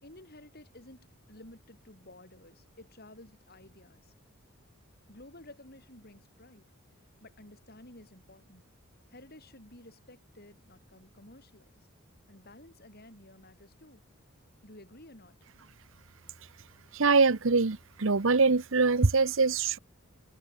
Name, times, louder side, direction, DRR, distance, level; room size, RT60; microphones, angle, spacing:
voice 1, 0.0-4.1 5.1-6.7 7.2-8.7 9.1-11.7 12.3-14.0 14.6-15.4, left 1 dB, 45° left, 7.0 m, -53 dB
voice 2, 16.9-19.8, right 4 dB, 60° right, 0.9 m, -24 dB
head